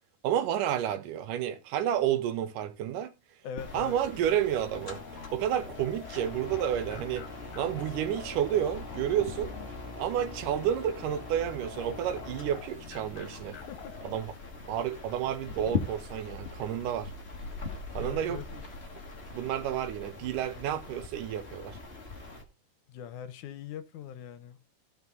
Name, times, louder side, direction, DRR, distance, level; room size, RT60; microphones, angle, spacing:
voice 1, 0.2-3.1 3.7-5.0 5.3-7.3 7.6-9.6 10.0-13.6 14.0-14.3 14.7-17.1 17.9-18.4 19.3-21.8, right 10 dB, 90° right, 2.5 m, -30 dB
voice 2, 3.4-3.9 13.7-14.0 17.9-18.6 22.9-24.6, left 8 dB, 75° left, 2.2 m, -42 dB
TV on and off, 3.6-22.4, left 3 dB, 35° left, 1.0 m, -41 dB
sound 1, 4.7-10.1 11.7-14.2, left 7 dB, 60° left, 2.3 m, -47 dB
14.5 x 5.4 x 3.9 m
omnidirectional pair, 3.7 m